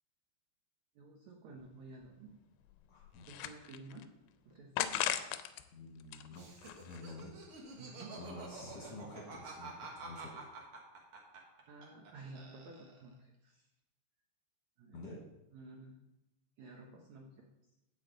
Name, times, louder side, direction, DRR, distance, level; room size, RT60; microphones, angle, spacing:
voice 1, 0.9-2.3 3.3-4.0 4.5-4.9 7.8-8.1 8.8-9.1 11.7-13.6 14.8-15.0 15.5-16.0 16.6-17.5, right 3 dB, 80° right, 0 dB, 1.6 m, -52 dB
sound 1, 1.6-1.7 2.0-2.1 2.7-4.0 4.8-5.6 6.0-7.2, left 12 dB, 85° left, 2.5 m, -38 dB
voice 2, 2.9-3.4 5.7-6.5 6.8-7.3 8.1-10.5 14.9-15.2, left 2 dB, 60° left, -3 dB, 1.8 m, -49 dB
Laughter, 6.3-12.1 12.4-13.1, right 3 dB, 60° right, 1.4 m, -49 dB
9.2 x 8.3 x 3.9 m, 0.95 s
omnidirectional pair, 4.6 m